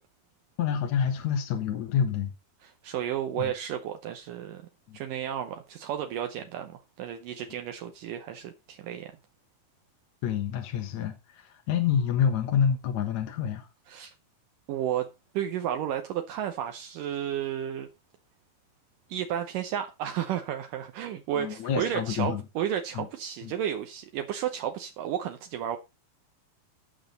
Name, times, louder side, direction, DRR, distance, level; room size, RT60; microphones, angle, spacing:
voice 1, 0.6-2.3 3.4-3.5 4.9-5.0 10.2-13.7 21.4-22.4 23.0-23.1 23.4-23.5, left 8 dB, 60° left, 2.4 m, -28 dB
voice 2, 2.6-4.6 4.9-9.1 13.9-14.1 14.7-15.1 15.3-17.9 19.1-25.8, right 10 dB, 75° right, 2.4 m, -32 dB
16.5 x 6.2 x 3.9 m
omnidirectional pair, 4.1 m